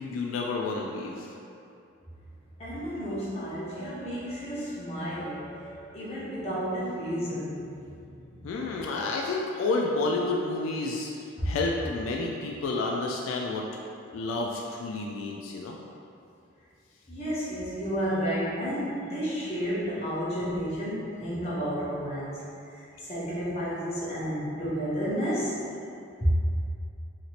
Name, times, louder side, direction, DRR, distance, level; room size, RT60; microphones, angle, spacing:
voice 1, 0.0-1.3 8.4-11.1 11.4-13.7 14.1-15.7, left 3 dB, 85° left, 0 dB, 0.3 m, -30 dB
voice 2, 2.6-8.5 11.4-11.5 17.1-22.4 22.7-25.6 26.2-26.3, equal, 30° left, -9 dB, 0.8 m, -31 dB
2.9 x 2.8 x 2.8 m, 2.5 s
head